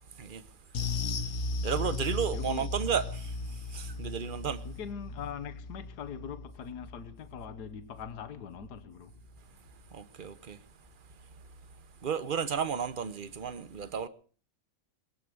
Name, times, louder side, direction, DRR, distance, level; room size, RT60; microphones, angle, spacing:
sound 1, 0.7-9.4 9.7-9.9 10.3-10.4, left 3 dB, 55° left, 1.4 m, -37 dB
voice 1, 1.6-4.6 9.9-10.6 12.0-14.1, right 7 dB, 40° right, 0.9 m, -33 dB
voice 2, 2.3-2.7 4.6-9.1, left 7 dB, 70° left, 1.7 m, -42 dB
22.0 x 8.3 x 7.9 m
omnidirectional pair, 1.8 m